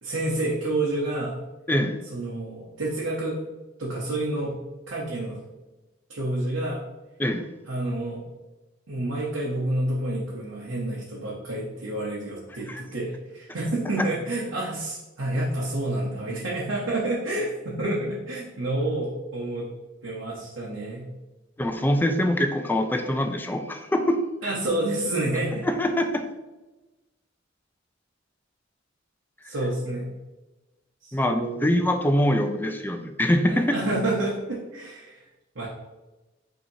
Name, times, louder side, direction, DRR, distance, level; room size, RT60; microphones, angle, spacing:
voice 1, 0.0-1.4 2.1-3.4 3.8-4.6 4.9-5.4 6.1-6.8 7.7-8.2 8.9-19.7 20.0-21.1 24.4-25.7 29.4-30.1 31.0-31.7 33.5-35.3 35.5-35.7, right 1 dB, 90° right, -6 dB, 0.8 m, -29 dB
voice 2, 21.6-24.5 25.6-26.2 31.1-33.7, left 1 dB, 10° left, 6 dB, 0.3 m, -24 dB
5.5 x 2.8 x 2.7 m, 1.1 s
head